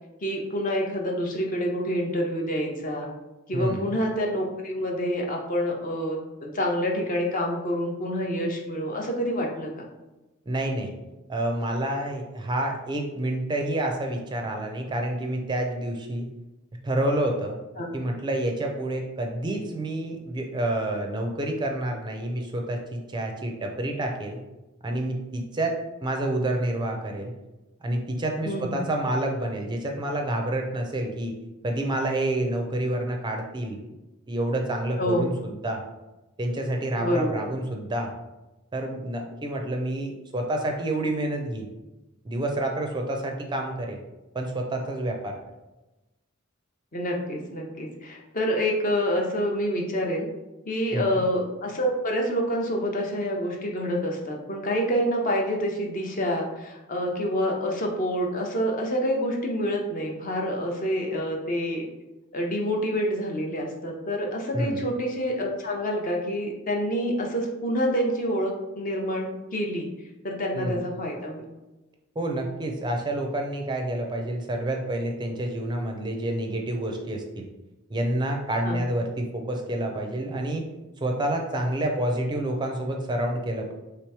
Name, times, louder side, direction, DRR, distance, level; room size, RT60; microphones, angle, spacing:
voice 1, 0.2-3.1 3.5-9.9 17.8-17.9 28.4-28.8 35.0-35.2 37.0-37.5 46.9-50.3 50.6-61.9 62.3-69.9 70.2-71.4 78.6-78.8, equal, 40° left, 1 dB, 0.7 m, -27 dB
voice 2, 3.5-3.9 10.5-10.9 11.3-16.3 16.8-17.6 17.9-24.4 24.8-27.3 27.8-31.3 31.6-33.8 34.3-35.8 36.4-38.1 38.7-41.7 42.2-44.0 44.3-45.4 50.9-51.2 64.5-64.8 70.5-70.9 72.2-77.5 77.9-80.7 81.0-83.7, right 1 dB, 20° right, 2 dB, 0.4 m, -28 dB
3.4 x 3.0 x 4.6 m, 1.0 s
head